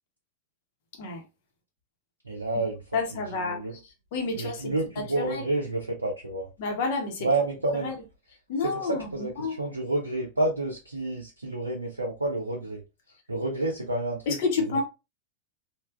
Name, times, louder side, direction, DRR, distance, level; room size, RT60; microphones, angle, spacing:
voice 1, 2.2-3.8 4.3-6.5 7.2-7.9 8.6-12.8 13.3-14.8, right 2 dB, 80° right, 0.5 m, -30 dB
voice 2, 2.9-3.6 4.1-4.7 5.2-5.4 6.6-7.3 7.8-7.9 8.5-9.5 14.3-14.8, left 4 dB, 50° left, 0.9 m, -29 dB
3.3 x 2.3 x 2.3 m
figure-of-eight pair, 90°, 0 cm